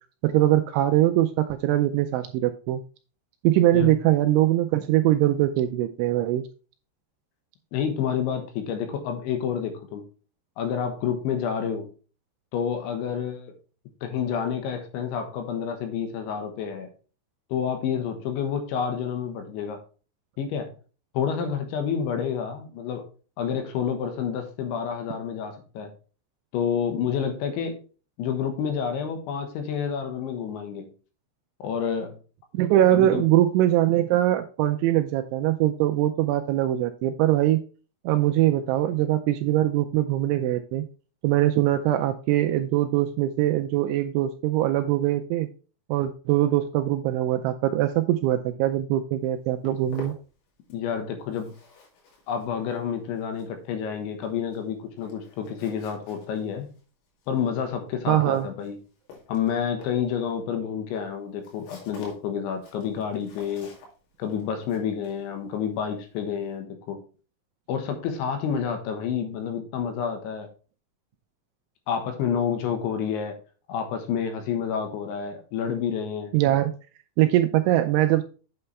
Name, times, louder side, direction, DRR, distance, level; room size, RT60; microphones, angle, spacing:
voice 1, 0.2-2.8 3.4-6.5 32.5-37.6 38.1-40.9 41.2-45.5 45.9-50.1 58.1-58.5 76.3-76.7 77.2-78.2, right 13 dB, 85° right, 7 dB, 2.8 m, -22 dB
voice 2, 7.7-10.0 10.6-11.9 12.5-13.5 14.0-16.9 17.5-19.8 20.4-20.7 21.1-23.0 23.4-25.9 26.5-27.8 28.2-30.9 31.6-32.1 32.9-33.2 50.7-51.6 52.3-56.7 57.3-58.8 59.3-63.7 64.2-67.0 67.7-70.5 71.9-73.4 73.7-76.3, left 7 dB, 75° left, 5 dB, 3.4 m, -29 dB
Walk footsteps, 49.2-50.9 51.2-66.6, left 4 dB, 90° left, 5.1 m, -50 dB
8.7 x 6.9 x 3.3 m, 0.36 s
omnidirectional pair, 5.8 m